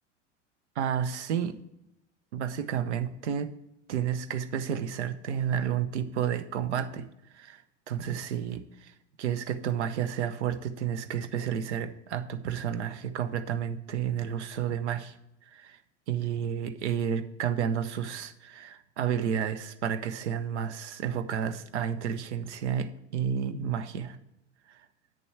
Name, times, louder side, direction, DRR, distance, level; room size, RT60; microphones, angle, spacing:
voice 1, 0.8-1.6 2.3-3.5 3.9-15.1 15.5-15.8 16.1-24.2 24.7-24.8, right 8 dB, 70° right, 11 dB, 0.9 m, -31 dB
8.8 x 7.0 x 4.6 m, 0.84 s
figure-of-eight pair, 80°, 36 cm